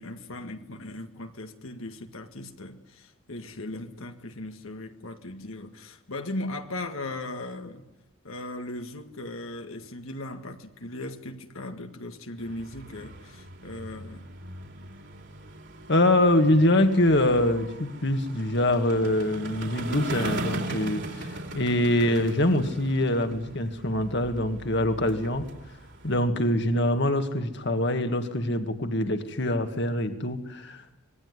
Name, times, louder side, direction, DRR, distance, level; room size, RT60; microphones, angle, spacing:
voice 1, 0.0-7.9 8.2-14.3, left 2 dB, 80° left, 2.0 m, -38 dB
sound 1, 12.4-26.2, right 2 dB, 60° right, 3.6 m, -39 dB
voice 2, 15.9-25.5 26.0-31.0, left 1 dB, 55° left, 2.0 m, -24 dB
26.0 x 20.5 x 9.6 m
head